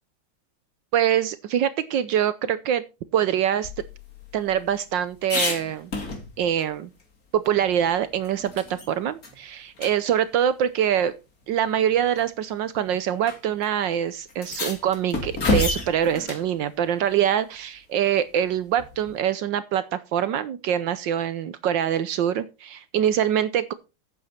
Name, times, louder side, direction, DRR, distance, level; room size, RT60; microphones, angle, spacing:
voice 1, 0.9-2.8 3.1-3.7 4.3-5.9 6.4-6.9 7.3-11.1 11.5-23.7, right 9 dB, 70° right, 15 dB, 1.3 m, -24 dB
sound 1, 3.6-6.6 7.0-7.1 7.4-8.9 9.2-9.4 9.8-9.9 11.0-11.1 12.0-12.2 13.2-13.4 13.6-13.7 14.3-16.5 18.8-19.2, left 2 dB, 45° left, 2.9 m, -30 dB
11.0 x 8.8 x 4.3 m, 0.28 s
omnidirectional pair, 2.3 m